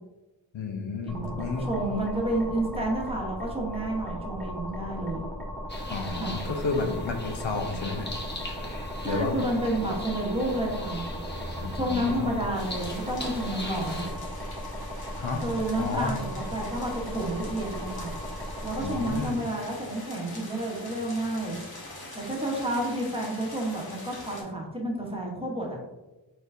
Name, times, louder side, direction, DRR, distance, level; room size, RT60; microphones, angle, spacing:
voice 1, 0.5-1.7 5.9-8.1 9.0-9.4 11.6-12.3 15.2-15.4 15.8-16.1 18.8-19.4, left 4 dB, 75° left, 3 dB, 0.8 m, -31 dB
voice 2, 1.0-5.3 6.2-6.4 9.0-11.0 11.7-14.1 15.4-16.2 16.5-18.1 18.6-21.6 22.1-25.8, right 1 dB, 10° right, -2 dB, 1.0 m, -30 dB
sound 1, 1.1-19.2, equal, 5° left, 1.5 m, -37 dB
sound 2, 5.7-14.1, left 1 dB, 25° left, 0.8 m, -39 dB
sound 3, 12.5-24.4, left 2 dB, 50° left, 1.2 m, -44 dB
4.5 x 4.5 x 2.6 m, 1.1 s
wide cardioid pair, 110°, 46 cm